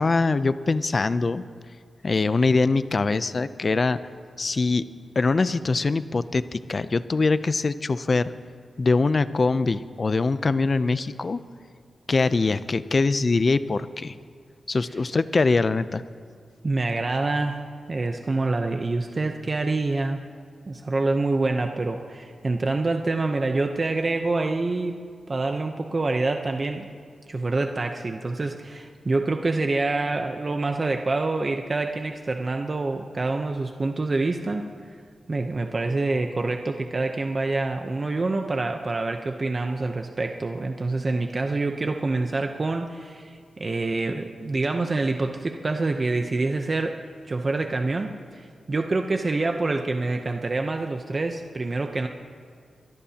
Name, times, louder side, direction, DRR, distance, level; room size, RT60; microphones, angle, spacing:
voice 1, 0.0-1.4 2.0-4.0 4.4-4.9 5.2-8.3 8.8-11.4 12.1-14.1 14.7-16.0, left 3 dB, 45° left, 14 dB, 0.5 m, -23 dB
voice 2, 16.6-17.6 17.9-20.3 20.7-24.9 25.3-26.9 27.3-34.7 35.3-47.0 47.3-52.1, right 3 dB, 40° right, 4 dB, 0.8 m, -26 dB
24.0 x 17.5 x 2.9 m, 2.1 s
wide cardioid pair, 85°, 0 cm